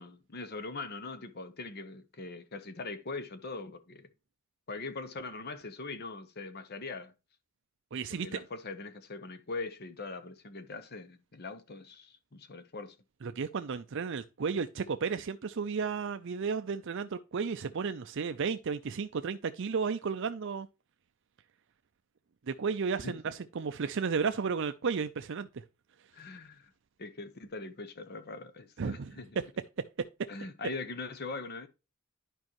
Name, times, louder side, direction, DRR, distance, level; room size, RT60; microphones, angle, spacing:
voice 1, 0.0-4.1 4.7-7.1 8.1-12.9 23.0-23.2 26.1-26.7 27.0-29.3 30.3-31.7, left 3 dB, 50° left, 0.9 m, -41 dB
voice 2, 7.9-8.4 13.2-20.7 22.5-25.6 28.8-29.1 30.4-30.5, right 5 dB, 60° right, 0.5 m, -33 dB
11.0 x 5.3 x 3.0 m
head